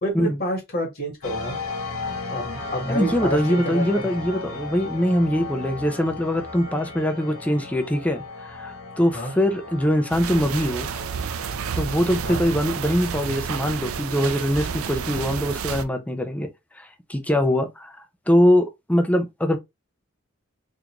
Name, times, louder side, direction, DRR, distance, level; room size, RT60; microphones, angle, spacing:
voice 1, 0.0-1.6 2.3-3.8 9.1-9.3 12.2-12.4, equal, 45° left, 1.4 m, -28 dB
sound 1, 1.2-12.4, left 3 dB, 70° left, 1.1 m, -35 dB
voice 2, 2.9-10.9 11.7-16.5 16.8-18.0 18.3-19.6, equal, 5° left, 0.4 m, -22 dB
sound 2, 10.1-15.8, right 6 dB, 80° right, 0.4 m, -30 dB
3.6 x 2.5 x 3.0 m
head